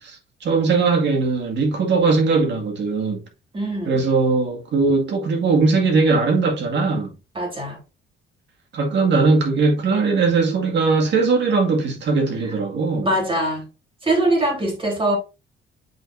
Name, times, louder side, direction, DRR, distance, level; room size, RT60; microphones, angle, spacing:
voice 1, 0.4-3.2 3.9-7.1 8.7-13.1, right 4 dB, 55° right, 2.1 m, -19 dB
voice 2, 3.5-4.0 7.4-7.8 13.0-13.6 14.0-15.2, right 1 dB, 25° right, 3.6 m, -22 dB
7.9 x 5.1 x 2.6 m
cardioid pair, 110°, 21 cm